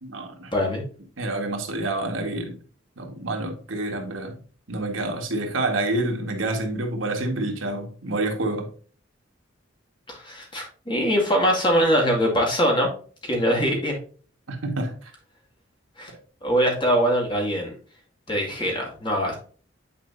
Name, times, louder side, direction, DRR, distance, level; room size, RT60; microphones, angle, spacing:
voice 1, 0.0-0.5 1.2-2.6 3.0-4.4 4.7-8.7 14.5-15.1 16.1-16.2, right 2 dB, 80° right, 1.8 m, -28 dB
voice 2, 0.5-0.8 10.1-12.9 13.2-14.0 16.0-16.1 16.4-17.7 18.3-19.3, equal, 25° left, 2.2 m, -22 dB
9.0 x 4.9 x 2.7 m
head